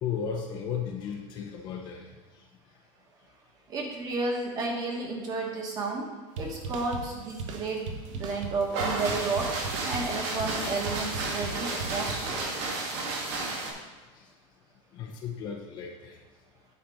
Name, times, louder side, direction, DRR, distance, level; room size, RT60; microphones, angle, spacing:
voice 1, 0.0-2.1 14.1-14.3 14.9-16.2, left 7 dB, 30° left, 1 dB, 0.7 m, -35 dB
voice 2, 3.7-6.1 6.4-9.5 9.8-12.5, right 3 dB, 25° right, 0 dB, 1.3 m, -32 dB
sound 1, 6.4-12.7, right 4 dB, 85° right, 1.2 m, -38 dB
sound 2, 8.7-13.7, right 3 dB, 60° right, 2.0 m, -32 dB
sound 3, 10.6-13.3, left 5 dB, 75° left, 2.0 m, -47 dB
8.9 x 4.1 x 6.4 m, 1.3 s
supercardioid pair, 175°, 16 cm